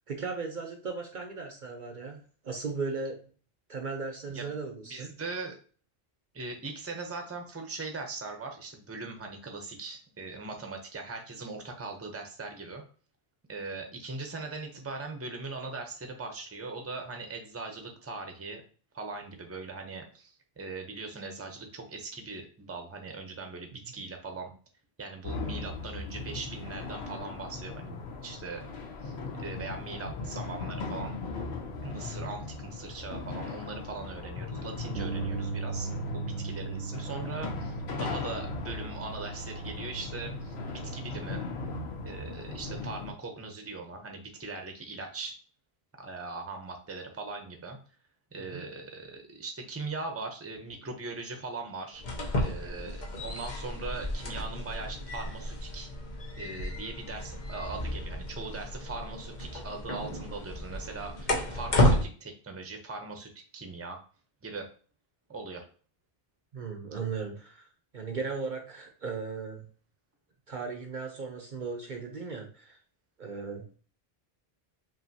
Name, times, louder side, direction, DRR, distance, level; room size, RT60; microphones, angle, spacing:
voice 1, 0.1-3.2 3.7-5.1 48.4-48.6 66.5-67.7 67.9-69.7 70.5-72.8 73.2-73.7, right 4 dB, 55° right, 3 dB, 0.7 m, -37 dB
voice 2, 4.8-5.5 6.3-12.8 13.5-18.6 18.9-24.5 25.0-28.6 29.0-29.1 29.4-31.1 31.8-41.4 42.0-45.3 46.0-47.8 48.3-52.0 52.4-55.9 56.4-64.0 64.4-64.7 65.3-65.6, right 3 dB, 15° right, 3 dB, 0.7 m, -40 dB
sound 1, 25.2-43.1, left 3 dB, 80° left, 1.1 m, -38 dB
Bass guitar, 34.9-41.2, right 5 dB, 80° right, 0.9 m, -38 dB
sound 2, 51.9-62.0, left 1 dB, 50° left, 0.9 m, -31 dB
5.4 x 2.7 x 2.7 m, 0.40 s
omnidirectional pair, 1.1 m